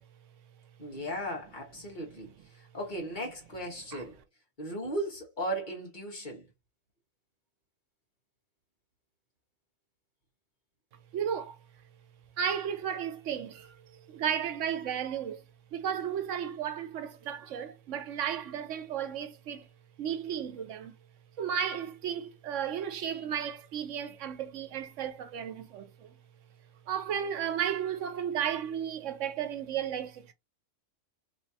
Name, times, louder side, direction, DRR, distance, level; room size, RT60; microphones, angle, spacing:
voice 1, 0.8-4.2 4.6-6.4, right 1 dB, 40° left, 1.5 m, -37 dB
voice 2, 11.1-11.6 12.4-15.4 15.7-19.7 20.0-20.9 21.4-26.1 26.9-30.3, right 8 dB, 75° right, 1.0 m, -34 dB
3.2 x 3.1 x 2.7 m
omnidirectional pair, 1.3 m